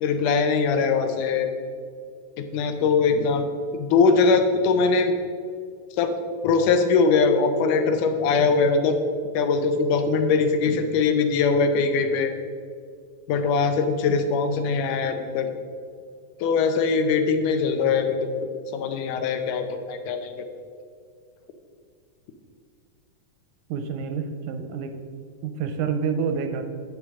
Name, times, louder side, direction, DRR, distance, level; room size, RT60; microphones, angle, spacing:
voice 1, 0.0-1.5 2.4-3.5 3.7-5.1 6.0-6.1 6.4-9.0 9.3-12.3 13.3-15.5 16.4-18.3 18.7-20.3, left 4 dB, 85° left, 7 dB, 2.3 m, -21 dB
voice 2, 23.7-25.0 25.4-26.6, right 6 dB, 85° right, 7 dB, 2.1 m, -28 dB
8.9 x 8.4 x 3.6 m, 2.2 s
omnidirectional pair, 3.6 m